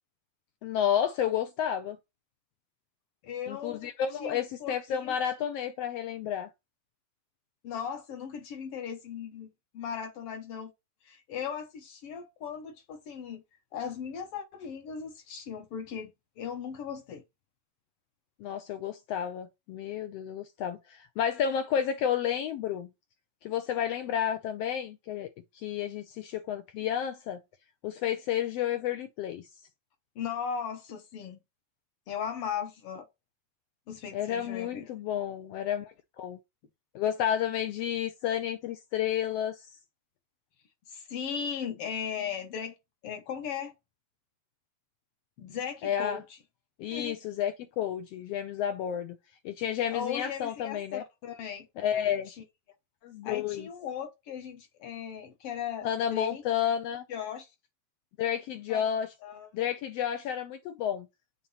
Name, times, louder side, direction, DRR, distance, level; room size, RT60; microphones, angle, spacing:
voice 1, 0.6-2.0 3.5-6.5 18.4-22.9 23.4-25.3 25.5-27.4 27.8-29.4 34.1-36.4 36.9-39.7 45.8-46.2 46.8-49.2 49.4-51.0 51.8-52.3 53.0-53.7 55.8-57.0 58.2-59.1 59.5-61.1, left 9 dB, 85° left, 1.4 m, -31 dB
voice 2, 3.2-3.9 4.2-5.1 7.6-9.5 9.7-10.7 11.0-13.4 13.7-17.2 30.1-31.4 32.1-33.1 33.9-34.9 40.9-42.7 43.0-43.7 45.4-46.2 46.9-47.2 49.9-51.7 52.3-52.4 53.2-56.4 57.1-57.5 58.7-58.9 59.2-59.5, left 7 dB, 60° left, 1.6 m, -37 dB
7.2 x 2.9 x 5.5 m
omnidirectional pair, 3.5 m